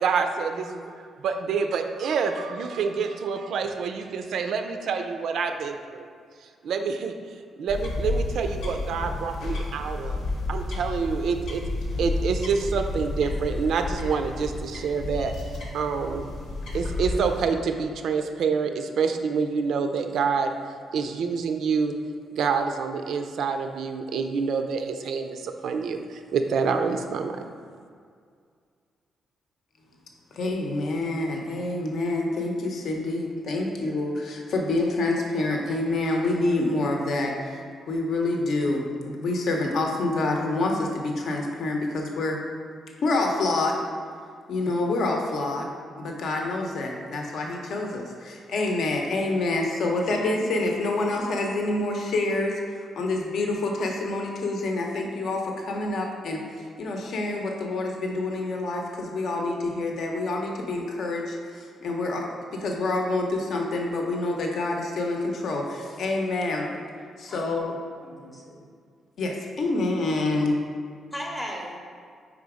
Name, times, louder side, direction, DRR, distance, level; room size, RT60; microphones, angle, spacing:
voice 1, 0.0-6.1 6.6-7.1 7.6-10.2 10.5-11.6 12.0-15.3 15.7-16.3 16.7-20.5 20.9-21.9 22.3-27.4, right 5 dB, 65° right, 6 dB, 0.4 m, -27 dB
sound 1, 7.7-17.4, left 2 dB, 75° left, 1.0 m, -31 dB
voice 2, 30.3-37.4 37.9-42.4 43.0-43.8 44.5-45.7 46.0-62.3 62.5-66.8 67.2-67.7 69.2-70.5, left 2 dB, 55° left, 1 dB, 0.7 m, -27 dB
voice 3, 68.0-68.6 71.1-71.8, equal, 10° left, -2 dB, 0.7 m, -36 dB
4.9 x 4.0 x 4.8 m, 2.1 s
cardioid pair, 170°, 0 cm